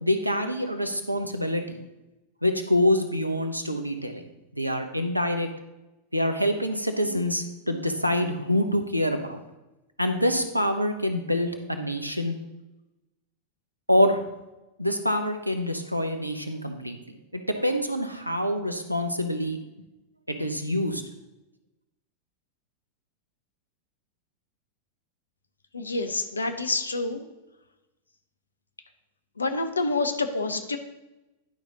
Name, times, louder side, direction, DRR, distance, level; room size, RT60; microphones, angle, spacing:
voice 1, 0.0-1.8 2.4-4.2 4.5-5.5 6.1-9.4 10.0-12.3 13.9-14.2 14.8-17.0 17.3-19.6 20.3-21.0, left 1 dB, 90° right, 7 dB, 0.8 m, -26 dB
voice 2, 25.7-27.3 29.4-30.8, left 3 dB, 80° left, 8 dB, 0.7 m, -27 dB
11.0 x 5.1 x 4.0 m, 1.0 s
figure-of-eight pair, 90°, 0 cm